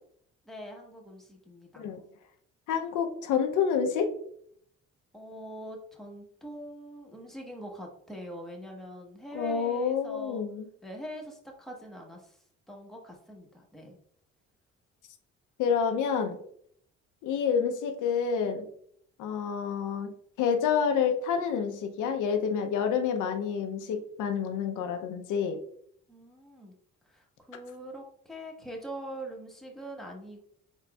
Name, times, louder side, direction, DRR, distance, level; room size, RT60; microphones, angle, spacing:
voice 1, 0.4-2.1 5.1-10.4 10.8-12.4 12.7-14.0 26.1-26.7 27.1-30.4, equal, ahead, 0 dB, 1.1 m, -43 dB
voice 2, 2.7-4.1 9.3-10.7 15.6-16.4 17.2-18.6 19.2-25.6, left 7 dB, 85° left, 6 dB, 0.6 m, -28 dB
4.1 x 3.9 x 2.3 m, 0.64 s
cardioid pair, 90°, 30 cm